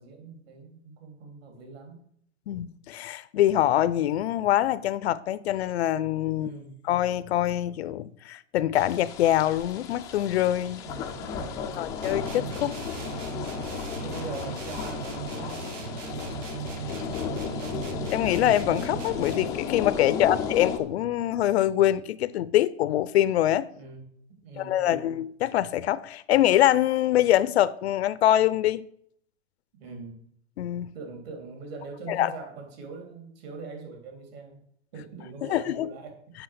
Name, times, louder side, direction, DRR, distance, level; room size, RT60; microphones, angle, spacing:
voice 1, 0.0-2.0 6.3-6.8 10.8-12.0 12.9-13.1 14.0-15.8 16.7-18.1 23.7-24.1 24.4-25.1 29.8-30.2 30.9-34.6 34.9-36.2, right 4 dB, 55° right, 3.5 m, -43 dB
voice 2, 2.5-6.5 6.9-10.8 11.8-12.8 18.1-23.7 24.6-28.9 30.6-30.9 32.1-32.3 35.5-35.9, left 12 dB, 60° left, 0.6 m, -24 dB
sound 1, 8.7-20.8, left 7 dB, 10° left, 0.4 m, -34 dB
sound 2, 12.0-19.7, right 8 dB, 85° right, 0.9 m, -38 dB
8.1 x 5.7 x 7.8 m
hypercardioid pair, 150°, 36 cm